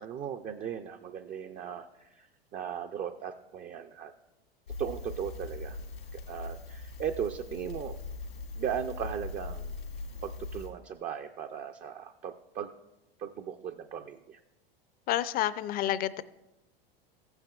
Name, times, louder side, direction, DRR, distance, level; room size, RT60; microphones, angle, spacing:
voice 1, 0.0-4.1 4.8-5.8 6.1-8.0 8.5-9.8 10.2-12.7 13.2-14.4, right 8 dB, 25° right, 7 dB, 0.4 m, -37 dB
Crackle, 4.7-10.7, left 3 dB, 90° left, 2.3 m, -41 dB
voice 2, 15.1-16.2, left 12 dB, 30° left, 16 dB, 0.5 m, -29 dB
15.0 x 8.9 x 2.3 m, 0.94 s
hypercardioid pair, 90°, 30 cm